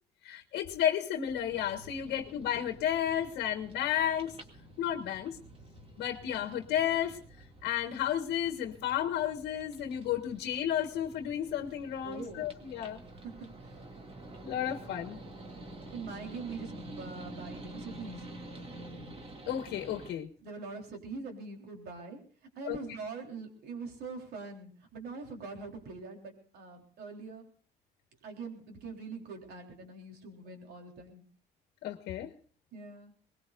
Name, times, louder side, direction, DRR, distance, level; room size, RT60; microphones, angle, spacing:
voice 1, 0.2-4.3 4.8-5.4 6.0-7.2 7.6-13.0 14.4-15.2 19.5-20.3 22.6-22.8 31.8-32.3, left 10 dB, 80° left, 7 dB, 1.4 m, -32 dB
sound 1, 1.3-20.1, right 2 dB, 35° right, 2.3 m, -48 dB
voice 2, 2.1-2.4 12.0-12.5 13.2-13.8 15.9-18.3 20.4-22.2 22.6-27.5 28.2-31.2 32.7-33.1, right 4 dB, 70° right, 2 dB, 3.8 m, -43 dB
23.0 x 20.5 x 2.5 m, 0.43 s
cardioid pair, 110°, 17 cm